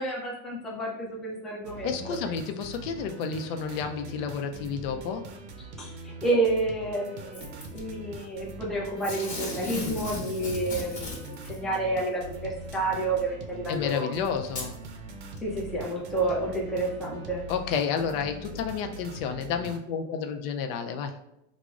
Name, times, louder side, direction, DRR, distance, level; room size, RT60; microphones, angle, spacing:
voice 1, 0.0-1.9 5.6-14.1 15.4-17.4, right 2 dB, ahead, -4 dB, 0.4 m, -30 dB
sound 1, 1.6-19.8, right 2 dB, 80° right, 0.6 m, -42 dB
voice 2, 1.8-5.3 13.7-14.8 17.5-21.1, left 6 dB, 65° left, 6 dB, 0.4 m, -31 dB
Packing tape duct tape / Tearing, 7.3-7.8 9.0-11.6 12.7-12.8 13.7-13.8 14.4-14.7 15.4-15.5, left 2 dB, 20° left, 1.1 m, -36 dB
4.8 x 2.0 x 2.3 m, 0.85 s
supercardioid pair, 145°, 32 cm